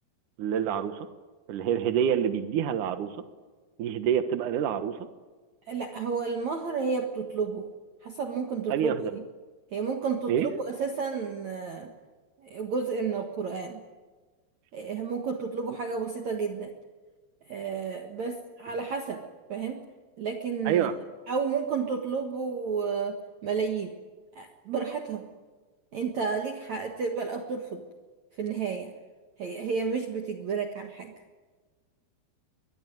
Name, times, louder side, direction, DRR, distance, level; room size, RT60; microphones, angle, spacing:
voice 1, 0.4-1.1 1.5-3.1 3.8-5.0 8.7-9.1 10.3-10.5 20.7-20.9, right 9 dB, 90° right, 10 dB, 1.8 m, -27 dB
voice 2, 5.7-7.7 8.0-9.2 9.7-11.9 12.4-13.8 14.7-16.7 17.5-19.2 19.5-19.8 20.2-21.0 21.3-23.9 24.4-25.3 25.9-27.8 28.4-28.9 29.4-31.1, right 5 dB, 60° right, 4 dB, 1.9 m, -31 dB
23.5 x 21.0 x 9.4 m, 1.4 s
omnidirectional pair, 5.8 m